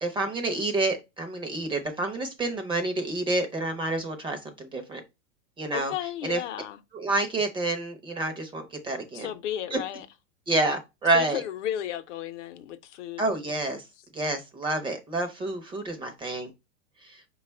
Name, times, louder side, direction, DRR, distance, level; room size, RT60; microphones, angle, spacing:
voice 1, 0.0-5.0 5.6-5.9 6.2-6.4 6.9-9.3 9.7-9.8 10.5-11.4 13.2-13.8 14.1-16.5 17.0-17.2, right 2 dB, 15° right, 0.6 m, -28 dB
voice 2, 5.7-6.8 9.1-10.1 11.1-13.2, left 11 dB, 65° left, 0.7 m, -33 dB
4.7 x 2.3 x 4.3 m
hypercardioid pair, 135°, 38 cm